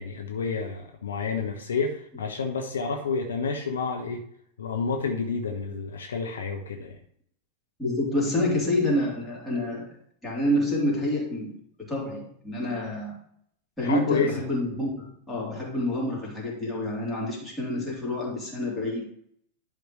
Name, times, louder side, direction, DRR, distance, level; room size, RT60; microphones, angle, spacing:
voice 1, 0.0-4.2 4.6-7.0 13.8-14.3, left 5 dB, 65° left, 4 dB, 0.9 m, -29 dB
voice 2, 7.8-9.9 10.2-11.6 11.9-13.2 13.8-19.1, left 1 dB, 10° left, -5 dB, 3.3 m, -28 dB
11.0 x 5.1 x 3.1 m, 0.66 s
figure-of-eight pair, 90°, 0 cm